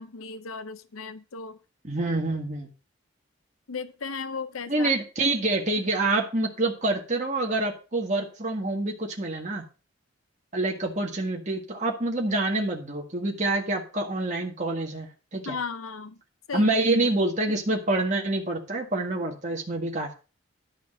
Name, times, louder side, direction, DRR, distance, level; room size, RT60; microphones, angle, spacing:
voice 1, 0.0-1.6 3.7-4.9 15.5-16.2 16.5-16.9, left 5 dB, 85° left, 12 dB, 0.8 m, -35 dB
voice 2, 1.8-2.7 4.7-9.7 10.5-15.6 16.5-20.1, right 2 dB, 35° right, 0 dB, 1.9 m, -27 dB
12.0 x 5.1 x 6.6 m, 0.33 s
head